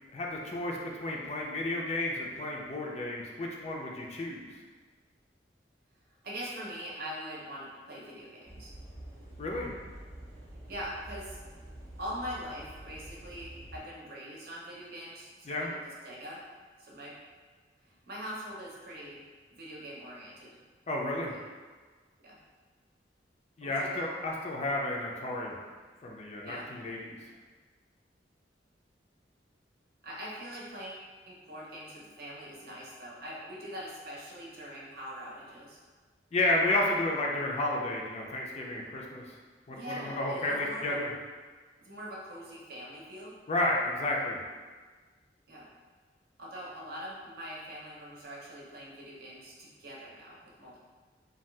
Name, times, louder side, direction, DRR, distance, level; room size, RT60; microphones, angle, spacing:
voice 1, 0.1-4.5 9.4-9.7 15.5-15.7 20.9-21.3 23.6-25.6 26.0-27.2 36.3-39.2 39.7-41.1 43.5-44.4, left 2 dB, 35° left, -1 dB, 0.4 m, -31 dB
voice 2, 6.2-8.7 10.7-11.4 12.0-15.8 16.0-16.4 16.8-17.1 17.8-19.2 19.6-20.6 21.3-21.4 22.2-22.4 23.6-24.0 26.4-26.7 30.0-35.8 39.7-41.0 41.8-43.3 45.5-45.7 46.4-50.8, equal, 60° right, -4 dB, 0.7 m, -43 dB
sound 1, 8.5-13.8, right 1 dB, 20° right, 0.7 m, -47 dB
2.7 x 2.3 x 3.2 m, 1.4 s
head